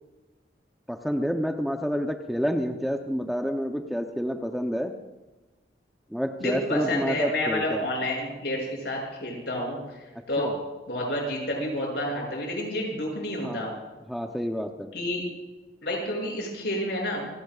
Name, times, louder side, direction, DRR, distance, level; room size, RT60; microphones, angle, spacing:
voice 1, 0.9-4.9 6.1-7.9 10.4-10.6 13.4-13.7 14.1-14.9, equal, ahead, 3 dB, 0.8 m, -29 dB
voice 2, 6.4-10.0 10.3-10.5 10.9-13.7 14.9-15.2 15.8-17.3, left 1 dB, 70° left, -1 dB, 7.2 m, -29 dB
28.5 x 17.5 x 2.5 m, 1.2 s
head